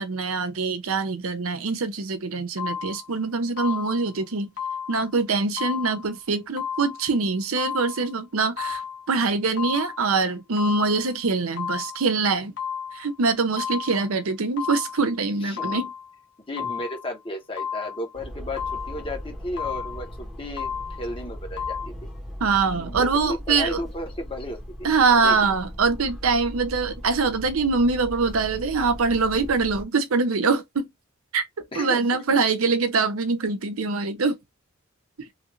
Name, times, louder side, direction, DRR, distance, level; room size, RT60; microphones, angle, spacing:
voice 1, 0.0-4.5 4.9-8.8 9.1-12.5 12.9-15.9 22.4-23.8 24.8-30.9 31.3-31.4 31.8-34.4, right 4 dB, 85° right, 0.7 m, -24 dB
sound 1, 2.6-3.1 3.6-4.1 4.6-5.1 5.6-6.1 6.6-7.1 7.6-8.1 8.6-9.1 9.6-10.1 10.6-11.1 11.6-12.1 12.6-13.1 13.6-14.1 14.6-15.1 15.6-16.1 16.6-17.1 17.6-18.1 18.6-19.1 19.6-20.1 20.6-21.1 21.6-21.9, left 7 dB, 55° left, 0.9 m, -33 dB
voice 2, 15.4-15.8 16.5-18.6 18.9-20.7 21.0-22.1 22.5-24.9 25.2-25.5 31.7-32.2, left 1 dB, 25° left, 1.0 m, -34 dB
sound 2, 18.1-29.8, equal, ahead, 1.0 m, -38 dB
3.1 x 2.5 x 3.0 m
head